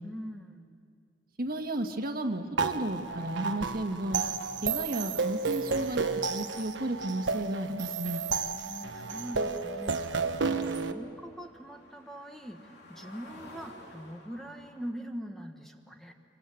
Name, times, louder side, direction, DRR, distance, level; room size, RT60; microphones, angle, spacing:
voice 1, 0.0-0.6 8.4-16.1, equal, ahead, 4 dB, 1.6 m, -43 dB
voice 2, 1.4-4.2 4.6-8.2, right 1 dB, 55° right, 5 dB, 1.8 m, -33 dB
sound 1, 2.6-10.9, right 4 dB, 70° right, 1.2 m, -32 dB
sound 2, 9.4-14.9, left 1 dB, 65° left, 3.7 m, -54 dB
26.0 x 24.5 x 9.3 m, 2.2 s
head